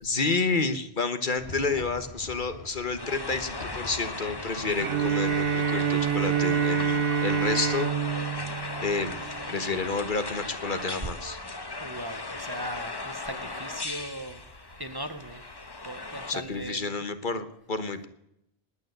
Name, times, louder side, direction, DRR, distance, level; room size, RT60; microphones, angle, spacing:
voice 1, 0.0-7.9 8.8-11.4 16.3-18.1, left 4 dB, 50° left, 10 dB, 1.3 m, -30 dB
sound 1, 1.4-16.7, left 2 dB, 75° left, 2.2 m, -48 dB
sound 2, 3.0-16.3, left 2 dB, 25° left, 1.1 m, -37 dB
Bowed string instrument, 4.8-9.7, right 8 dB, 65° right, 1.0 m, -27 dB
voice 2, 11.8-14.4 14.8-15.4 15.8-16.9, equal, 25° right, 9 dB, 1.0 m, -38 dB
19.5 x 9.2 x 7.9 m, 0.78 s
omnidirectional pair, 1.1 m